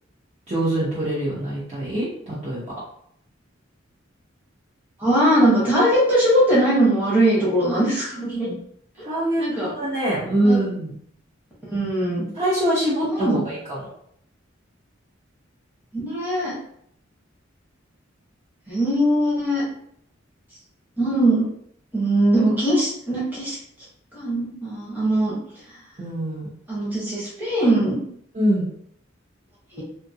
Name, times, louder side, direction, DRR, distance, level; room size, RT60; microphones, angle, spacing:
voice 1, 0.5-2.6 9.0-10.9 12.3-13.9 26.0-26.5 28.3-28.6, right 1 dB, 35° right, -10 dB, 0.8 m, -24 dB
voice 2, 5.0-8.5 9.4-9.7 10.4-10.6 11.7-12.3 13.1-13.4 15.9-16.5 18.7-19.7 21.0-21.5 21.9-23.6 24.1-25.3 26.7-28.0 29.7-29.8, right 1 dB, 10° right, -8 dB, 1.0 m, -20 dB
2.7 x 2.5 x 2.7 m, 0.67 s
head